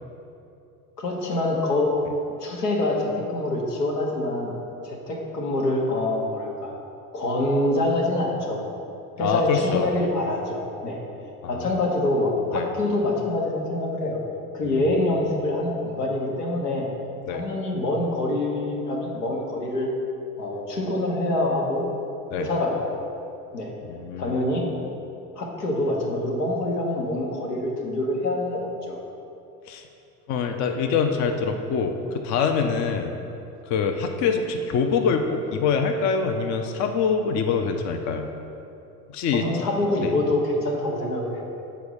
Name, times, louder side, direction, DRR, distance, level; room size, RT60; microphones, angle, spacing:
voice 1, 1.0-1.9 2.4-4.6 4.8-6.7 7.1-8.6 9.2-11.0 11.5-14.2 14.5-16.9 17.3-19.9 20.4-21.9 22.4-22.9 23.5-23.7 24.2-24.6 25.4-29.0 39.3-41.5, left 1 dB, 85° left, -1 dB, 1.2 m, -25 dB
voice 2, 9.2-9.9 11.4-11.7 12.5-12.7 14.6-14.8 17.3-17.5 22.3-22.5 23.9-24.4 29.7-29.8 30.3-33.1 33.7-38.3 39.1-39.5 40.0-40.1, left 5 dB, 40° left, 4 dB, 0.6 m, -25 dB
7.0 x 4.2 x 4.8 m, 2.7 s
hypercardioid pair, 75°, 46 cm